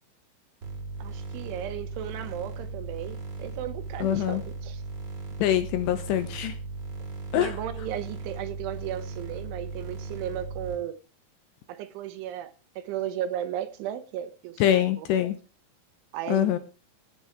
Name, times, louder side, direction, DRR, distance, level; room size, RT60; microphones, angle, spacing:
sound 1, 0.6-10.8, right 3 dB, 30° right, 2.1 m, -37 dB
voice 1, 1.0-4.8 7.4-11.0 11.7-15.2 16.1-16.6, right 11 dB, 80° right, 3.5 m, -35 dB
voice 2, 4.0-4.4 5.4-6.5 7.3-7.6 14.6-15.4 16.3-16.6, left 11 dB, 80° left, 2.6 m, -24 dB
17.5 x 7.1 x 4.8 m
omnidirectional pair, 5.6 m